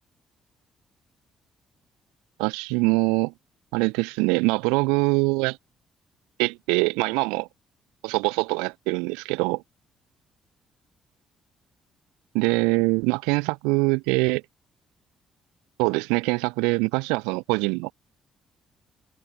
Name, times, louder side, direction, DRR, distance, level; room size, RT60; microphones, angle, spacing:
voice 1, 2.4-3.3 3.7-5.6 6.4-7.5 8.0-9.6 12.3-14.4 15.8-17.9, right 29 dB, 80° right, 4.1 m, -23 dB
open air
hypercardioid pair, 50°, 0 cm